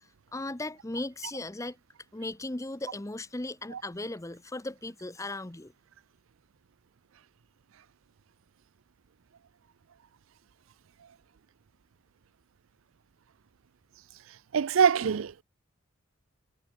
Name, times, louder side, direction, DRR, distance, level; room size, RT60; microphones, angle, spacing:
voice 1, 0.3-1.8 2.1-5.7, left 2 dB, 15° left, 0.7 m, -37 dB
voice 2, 14.5-15.4, right 7 dB, 75° right, 0.5 m, -23 dB
head